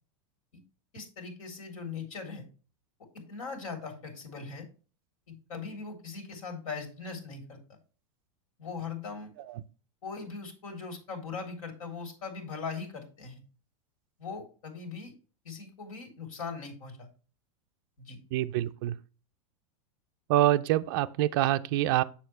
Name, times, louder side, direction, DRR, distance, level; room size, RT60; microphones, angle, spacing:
voice 1, 0.9-2.4 3.1-4.7 5.3-7.8 8.6-9.3 10.0-13.4 14.2-15.1 15.4-17.1 18.0-18.2, left 5 dB, 90° left, 3.5 m, -40 dB
voice 2, 18.3-19.0 20.3-22.0, right 14 dB, 40° right, 0.4 m, -26 dB
7.2 x 6.9 x 3.2 m
supercardioid pair, 175°, 17 cm